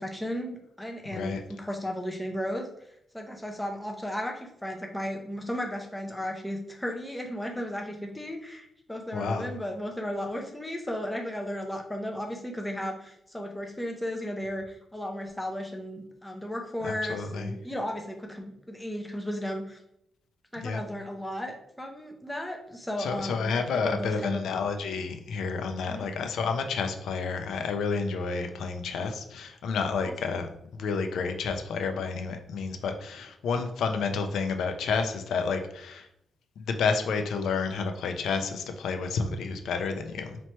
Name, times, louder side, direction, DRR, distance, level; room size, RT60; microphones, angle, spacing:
voice 1, 0.0-2.7 3.1-19.8 20.5-23.6 23.8-24.4 25.9-26.1 30.0-30.1, equal, 5° left, 2 dB, 0.5 m, -35 dB
voice 2, 9.1-9.5 16.8-17.5 20.6-20.8 23.0-36.1 36.6-40.4, left 5 dB, 80° left, 6 dB, 0.5 m, -30 dB
3.1 x 2.9 x 4.3 m, 0.76 s
wide cardioid pair, 180°, 0 cm